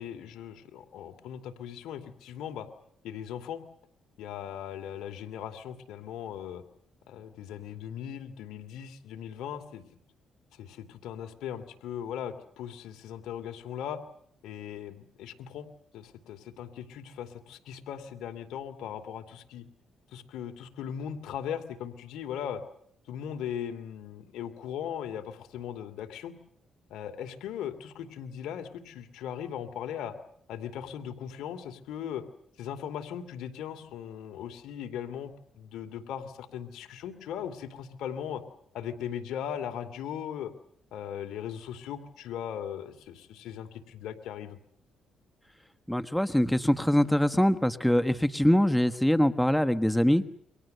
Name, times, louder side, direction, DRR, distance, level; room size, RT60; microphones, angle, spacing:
voice 1, 0.0-2.7 3.0-3.6 4.2-6.6 7.1-9.8 10.5-14.0 14.4-15.7 15.9-19.7 20.1-22.6 23.1-26.3 26.9-30.1 30.5-32.2 32.6-38.4 38.7-40.5 40.9-44.6, left 9 dB, 85° left, 6 dB, 2.6 m, -38 dB
voice 2, 45.9-50.2, equal, 5° left, 10 dB, 1.3 m, -23 dB
29.0 x 24.0 x 6.7 m, 0.67 s
cardioid pair, 90°, 0 cm